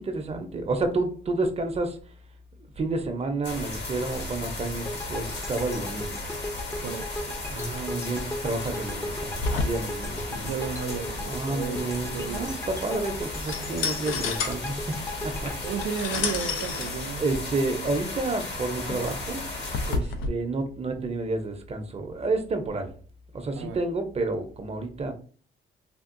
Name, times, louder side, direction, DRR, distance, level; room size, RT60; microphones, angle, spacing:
voice 1, 0.0-2.0 2.8-6.2 7.5-10.5 11.2-15.7 17.2-19.4 19.8-22.9 23.3-25.1, right 3 dB, 30° right, 0.7 m, -30 dB
sound 1, 3.4-20.0, left 2 dB, 60° left, 1.1 m, -36 dB
sound 2, 4.8-17.0, left 1 dB, 15° left, 0.6 m, -38 dB
voice 2, 6.8-7.4 10.4-12.5 15.6-17.2 23.6-23.8, right 7 dB, 75° right, 0.4 m, -34 dB
sound 3, 9.3-20.3, left 4 dB, 90° left, 0.5 m, -33 dB
3.5 x 2.4 x 2.5 m
cardioid pair, 90°, 20 cm